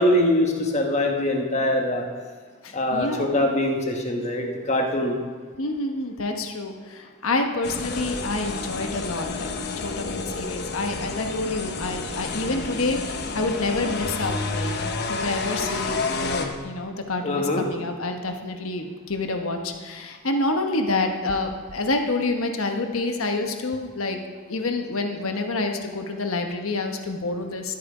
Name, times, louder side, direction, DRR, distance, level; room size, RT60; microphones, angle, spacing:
voice 1, 0.0-2.0 2.7-5.2 17.2-17.7, left 1 dB, 30° left, 2 dB, 1.2 m, -23 dB
voice 2, 2.6-3.3 5.6-9.5 9.8-13.0 13.3-14.7 15.1-24.2 24.5-27.7, left 2 dB, 75° left, 4 dB, 1.2 m, -28 dB
sound 1, 7.6-16.5, left 3 dB, 50° left, 1.0 m, -30 dB
13.0 x 8.5 x 5.0 m, 1.5 s
head